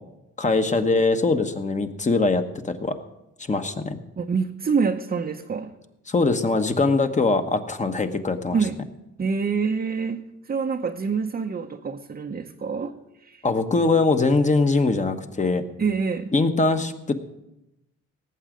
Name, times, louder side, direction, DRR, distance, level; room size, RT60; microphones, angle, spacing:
voice 1, 0.4-3.0 3.5-4.0 6.1-8.6 13.4-15.6 16.3-17.1, left 3 dB, 25° left, 7 dB, 1.2 m, -22 dB
voice 2, 4.2-5.7 8.5-8.8 9.2-13.4 15.8-16.3, right 5 dB, 30° right, 3 dB, 0.8 m, -26 dB
18.0 x 8.1 x 5.1 m, 0.92 s
cardioid pair, 90°, 30 cm